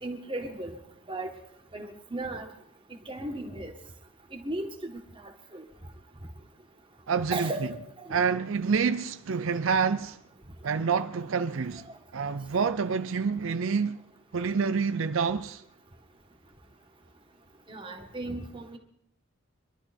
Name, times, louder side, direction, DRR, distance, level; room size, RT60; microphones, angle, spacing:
voice 1, 0.0-0.8 1.1-1.3 1.7-2.5 3.1-3.7 4.3-5.6 7.3-7.8 8.1-8.2 17.7-18.8, right 2 dB, 25° right, 1.8 m, -36 dB
voice 2, 7.1-7.5 8.1-10.2 10.6-11.9 12.1-14.0 14.3-15.6, right 5 dB, 75° right, 0.6 m, -27 dB
24.0 x 12.0 x 4.4 m
head